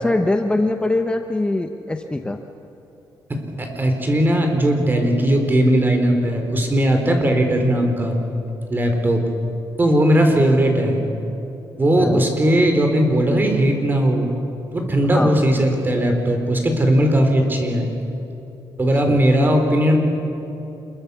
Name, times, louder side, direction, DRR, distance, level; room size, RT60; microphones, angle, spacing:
voice 1, 0.0-2.4 12.0-12.3 15.1-15.6 19.1-19.2, left 2 dB, 10° left, 5 dB, 1.0 m, -22 dB
voice 2, 3.3-8.2 8.7-9.2 9.8-11.0 11.8-14.3 14.7-17.9 18.8-20.0, right 1 dB, 25° right, 4 dB, 4.5 m, -18 dB
27.0 x 22.5 x 7.2 m, 3.0 s
cardioid pair, 110°, 8 cm